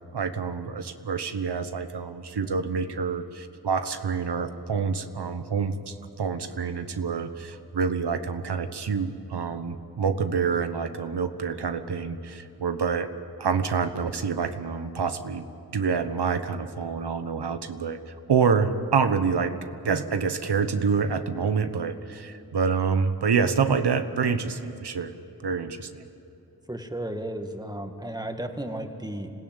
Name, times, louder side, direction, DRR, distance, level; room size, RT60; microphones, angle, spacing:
voice 1, 0.1-13.1 13.4-15.5 15.7-19.6 19.8-25.1 25.4-26.0, right 5 dB, 90° right, 9 dB, 1.2 m, -27 dB
voice 2, 26.7-29.3, right 1 dB, 10° right, 5 dB, 1.9 m, -34 dB
26.0 x 17.0 x 9.0 m, 2.9 s
wide cardioid pair, 70°, 39 cm